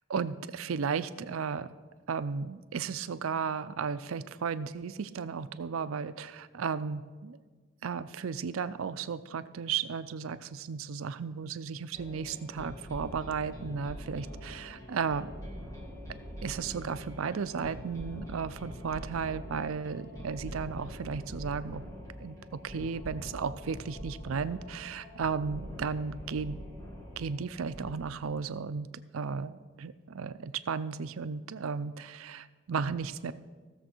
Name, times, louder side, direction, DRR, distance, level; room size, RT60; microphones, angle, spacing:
voice 1, 0.1-1.7 2.1-7.4 7.8-15.3 16.4-21.8 22.2-22.4 22.6-26.6 27.2-33.3, right 6 dB, 85° right, 14 dB, 0.5 m, -34 dB
sound 1, 11.9-28.0, equal, 15° left, 1.8 m, -44 dB
16.0 x 6.9 x 4.5 m, 1.4 s
head